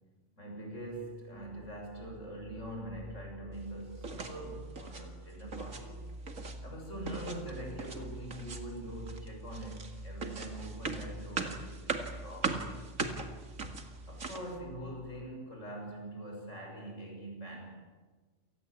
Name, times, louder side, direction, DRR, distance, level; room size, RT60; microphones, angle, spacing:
voice 1, 0.4-6.1 6.6-12.7 14.1-17.8, right 1 dB, 70° left, 1 dB, 7.3 m, -43 dB
sound 1, 1.3-15.4, right 1 dB, 30° right, 1.3 m, -48 dB
sound 2, 4.0-4.4 4.7-5.1 5.4-5.8 6.1-6.6 7.1-8.0 8.3-8.8 9.1-14.5, right 4 dB, 90° right, 2.6 m, -39 dB
29.0 x 19.0 x 8.5 m, 1.3 s
omnidirectional pair, 1.3 m